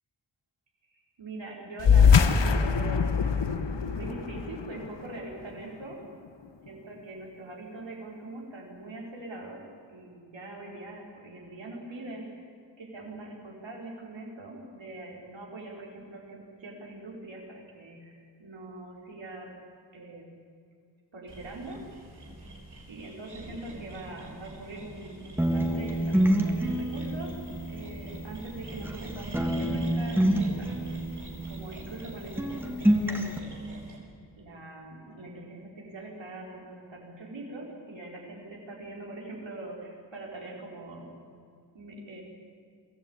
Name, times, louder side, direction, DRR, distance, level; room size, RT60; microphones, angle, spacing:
voice 1, 0.9-3.3 3.8-6.0 6.7-9.6 9.9-12.3 12.8-19.5 19.9-20.3 21.1-21.8 22.9-27.3 27.7-30.8 31.5-33.8 34.4-41.1 41.7-42.2, right 2 dB, 85° right, -1 dB, 4.5 m, -42 dB
sound 1, 1.8-6.7, left 6 dB, 75° left, 1.1 m, -24 dB
sound 2, 21.3-34.0, right 2 dB, 60° right, 5.9 m, -44 dB
sound 3, 25.4-29.0 29.3-32.1 32.4-33.4, right 1 dB, 5° right, 1.7 m, -28 dB
23.0 x 14.5 x 8.7 m, 2.2 s
wide cardioid pair, 105°, 43 cm